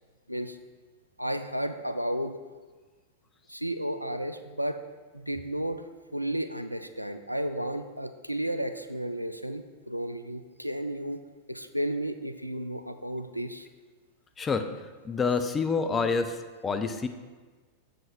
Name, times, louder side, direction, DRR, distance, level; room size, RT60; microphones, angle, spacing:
voice 1, 1.2-2.3 3.5-4.8 5.1-5.8 6.1-11.2 11.5-13.7, right 1 dB, 90° right, 9 dB, 0.4 m, -33 dB
voice 2, 14.4-14.7 15.0-16.4 16.6-17.1, left 5 dB, 20° left, 8 dB, 0.6 m, -27 dB
7.6 x 5.1 x 5.9 m, 1.4 s
figure-of-eight pair, 90°, 0 cm